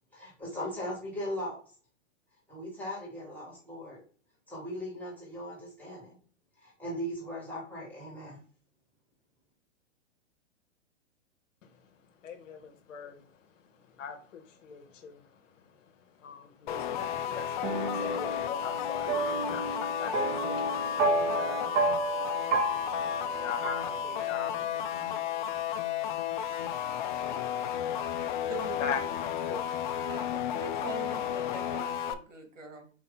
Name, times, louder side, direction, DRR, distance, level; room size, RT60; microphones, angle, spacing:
voice 1, 0.1-1.6 2.5-4.0 4.5-6.2 6.6-8.4, equal, 5° left, 1.5 m, -38 dB
voice 2, 12.2-13.2 14.0-15.2 16.2-21.7 23.2-24.7 28.8-29.0 29.5-29.7, left 6 dB, 80° left, 0.8 m, -40 dB
sound 1, 16.7-32.1, left 10 dB, 40° left, 0.4 m, -33 dB
sound 2, 17.6-24.6, right 3 dB, 20° right, 0.5 m, -32 dB
voice 3, 28.5-29.2 30.1-32.9, right 4 dB, 85° right, 1.5 m, -43 dB
4.6 x 2.7 x 3.8 m
hypercardioid pair, 130°, 37 cm